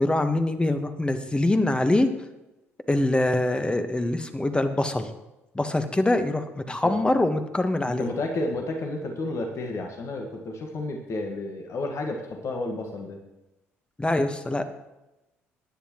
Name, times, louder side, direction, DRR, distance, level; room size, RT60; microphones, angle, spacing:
voice 1, 0.0-2.1 2.9-5.1 5.5-8.1 14.0-14.6, left 2 dB, 15° left, 8 dB, 1.4 m, -24 dB
voice 2, 8.0-13.2, left 2 dB, 45° left, 2 dB, 1.7 m, -31 dB
20.0 x 10.0 x 3.1 m, 0.97 s
figure-of-eight pair, 50°, 7 cm